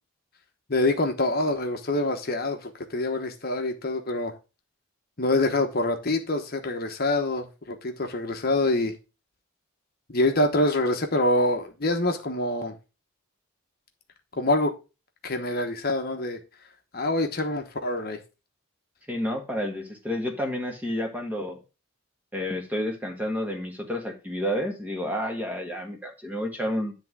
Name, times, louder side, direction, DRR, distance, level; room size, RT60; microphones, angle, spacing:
voice 1, 0.7-4.3 5.2-8.9 10.1-12.7 14.4-14.7 15.2-16.4 16.9-18.2, left 2 dB, 45° left, 1.1 m, -25 dB
voice 2, 19.1-21.6 22.3-26.9, equal, 10° right, 1.5 m, -30 dB
10.5 x 3.5 x 6.0 m
head